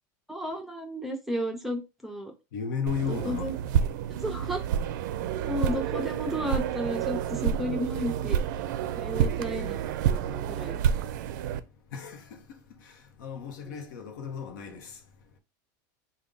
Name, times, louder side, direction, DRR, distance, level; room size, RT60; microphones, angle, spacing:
voice 1, 0.3-2.3 3.1-3.5 4.2-4.6 5.4-8.4 8.9-10.8 13.7-13.8, equal, ahead, 0.5 m, -33 dB
voice 2, 2.5-3.5 11.2-15.4, left 7 dB, 85° left, 0.8 m, -36 dB
sound 1, 2.9-11.6, right 9 dB, 75° right, 0.4 m, -29 dB
3.5 x 2.2 x 3.8 m
supercardioid pair, 150°, 10 cm